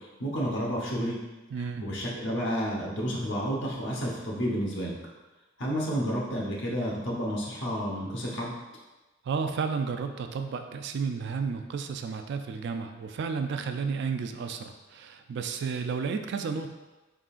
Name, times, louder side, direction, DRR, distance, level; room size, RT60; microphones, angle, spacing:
voice 1, 0.2-1.2 1.8-5.0 5.6-8.5, equal, 60° left, -3 dB, 0.9 m, -30 dB
voice 2, 1.5-1.8 9.3-16.7, right 5 dB, 60° right, 6 dB, 0.3 m, -32 dB
4.5 x 3.7 x 2.4 m, 1.1 s
head